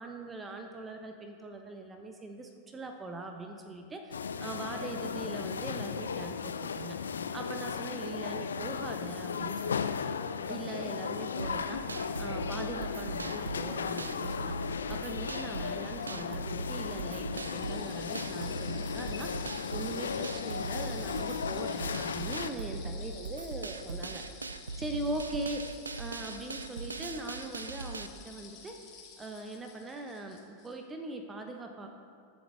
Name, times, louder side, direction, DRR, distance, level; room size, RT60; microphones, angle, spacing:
voice 1, 0.0-7.0 7.3-9.8 10.5-24.2 24.8-28.8 29.2-31.9, right 2 dB, 15° right, 4 dB, 1.0 m, -41 dB
sound 1, 4.1-22.5, left 6 dB, 70° left, 0.5 m, -36 dB
sound 2, 11.4-28.1, right 3 dB, 75° right, 0.5 m, -40 dB
sound 3, 17.3-30.7, left 6 dB, 35° left, 2.8 m, -51 dB
22.0 x 7.8 x 3.4 m, 2.2 s
figure-of-eight pair, 90°, 0 cm